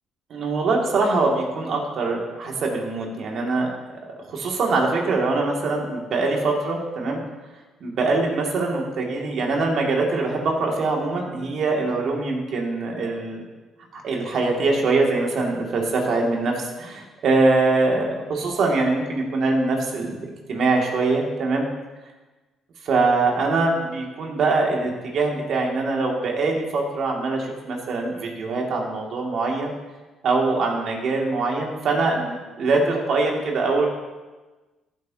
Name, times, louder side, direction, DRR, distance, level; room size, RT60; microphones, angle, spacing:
voice 1, 0.3-4.0 4.3-7.2 7.8-13.4 13.9-21.7 22.9-29.7 30.2-33.9, right 3 dB, 65° right, 0 dB, 2.3 m, -23 dB
14.5 x 8.3 x 2.8 m, 1.2 s
supercardioid pair, 75°, 0 cm